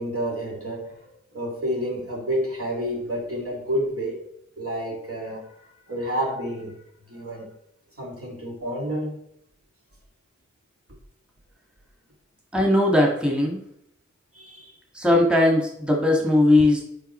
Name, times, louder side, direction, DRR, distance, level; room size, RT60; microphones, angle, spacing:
voice 1, 0.0-4.2 4.6-5.5 5.9-6.8 7.1-7.5 8.0-9.1 14.3-14.7, equal, 50° right, -1 dB, 2.3 m, -29 dB
voice 2, 12.5-13.6 14.9-16.8, left 1 dB, 5° right, -1 dB, 1.8 m, -19 dB
8.1 x 5.1 x 4.4 m, 0.75 s
cardioid pair, 40°, 29 cm